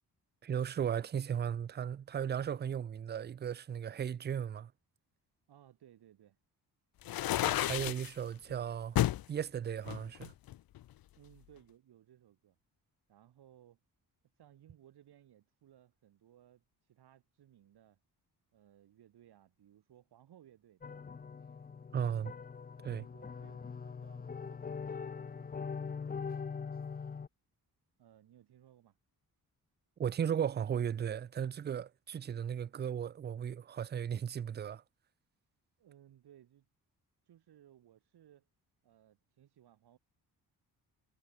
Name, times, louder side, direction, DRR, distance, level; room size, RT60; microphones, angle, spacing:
voice 1, 0.4-4.7 7.3-9.0 9.3-10.3 21.9-22.3 22.8-23.0 30.0-34.8, right 8 dB, 30° right, 0.4 m, -36 dB
voice 2, 5.5-6.4 11.2-12.6 13.1-13.8 14.4-18.0 18.5-21.1 22.9-25.7 28.0-29.0 35.8-36.7 37.3-38.5 38.8-40.0, right 11 dB, 90° right, 7.1 m, -62 dB
sound 1, 7.0-8.1 9.0-9.2 9.9-10.9, left 14 dB, 65° left, 0.7 m, -31 dB
sound 2, 20.8-27.3, left 5 dB, 25° left, 0.7 m, -42 dB
wide cardioid pair, 145°, 38 cm